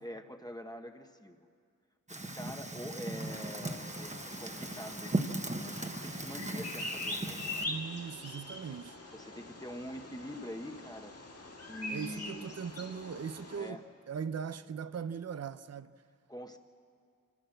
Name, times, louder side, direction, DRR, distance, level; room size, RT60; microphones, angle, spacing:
voice 1, 0.0-1.5 2.1-7.6 9.1-11.1 11.7-12.5 13.6-13.8 16.3-16.6, equal, 10° left, 1.1 m, -45 dB
Fire, 2.1-7.6, right 2 dB, 20° right, 1.2 m, -38 dB
Bird vocalization bird call bird song, 3.2-13.7, left 2 dB, 45° left, 2.3 m, -44 dB
voice 2, 7.7-9.0 11.9-15.9, right 6 dB, 50° right, 0.5 m, -40 dB
26.0 x 16.0 x 7.8 m
wide cardioid pair, 75°, 32 cm